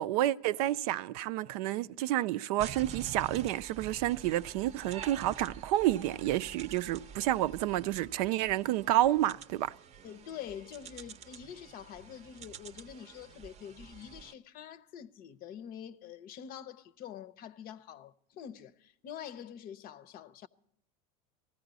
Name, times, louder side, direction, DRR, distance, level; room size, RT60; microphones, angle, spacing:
voice 1, 0.0-9.7, right 14 dB, 75° right, 0.5 m, -30 dB
sound 1, 2.6-14.3, right 7 dB, 35° right, 0.7 m, -48 dB
voice 2, 10.0-20.5, left 9 dB, 50° left, 0.7 m, -46 dB
19.5 x 15.0 x 4.1 m
supercardioid pair, 110°, 20 cm